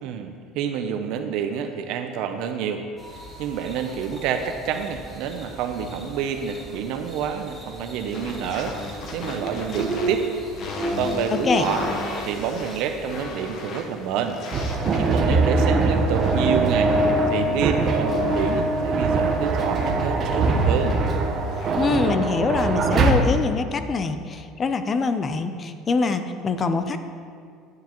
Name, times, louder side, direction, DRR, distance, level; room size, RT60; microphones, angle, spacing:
voice 1, 0.0-2.8 3.4-10.3 10.9-11.8 12.2-14.4 15.0-17.0 17.3-21.0, right 8 dB, 65° right, 6 dB, 0.6 m, -28 dB
sound 1, 3.0-13.2, right 2 dB, 10° left, 1.7 m, -35 dB
sound 2, 8.1-22.0, left 2 dB, 50° left, 1.0 m, -37 dB
voice 2, 11.3-11.7 21.8-27.0, left 4 dB, 30° left, 9 dB, 0.5 m, -24 dB
sound 3, 14.5-23.1, right 3 dB, 35° right, 0.8 m, -22 dB
9.4 x 9.4 x 3.0 m, 2.2 s
cardioid pair, 130°, 0 cm